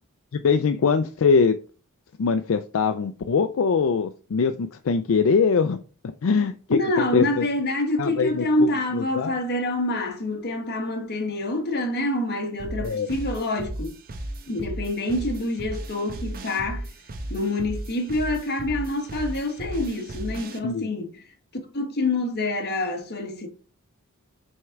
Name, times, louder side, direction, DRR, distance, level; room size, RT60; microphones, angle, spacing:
voice 1, 0.3-1.6 2.2-5.8 6.2-7.4 8.0-9.3 12.8-13.1 20.6-20.9, left 5 dB, 70° left, 0.4 m, -22 dB
voice 2, 6.4-14.0 14.5-16.9 17.3-21.2 21.7-23.5, left 2 dB, 50° left, 1.2 m, -26 dB
sound 1, 12.6-20.6, right 1 dB, 45° right, 0.8 m, -35 dB
6.3 x 3.7 x 4.5 m
head